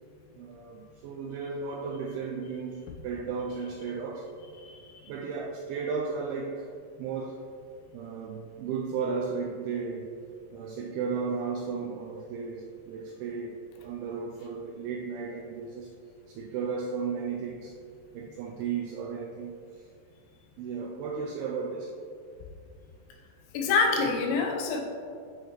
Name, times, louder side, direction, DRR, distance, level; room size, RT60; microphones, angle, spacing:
voice 1, 0.4-4.3 5.0-6.7 7.0-7.5 7.9-10.2 10.5-15.9 16.3-17.8 18.1-19.9 20.6-22.0, right 5 dB, 90° right, 1 dB, 2.2 m, -34 dB
voice 2, 4.6-5.1 23.5-24.8, left 4 dB, 85° left, 2 dB, 3.2 m, -26 dB
9.4 x 6.5 x 3.1 m, 2.4 s
omnidirectional pair, 5.0 m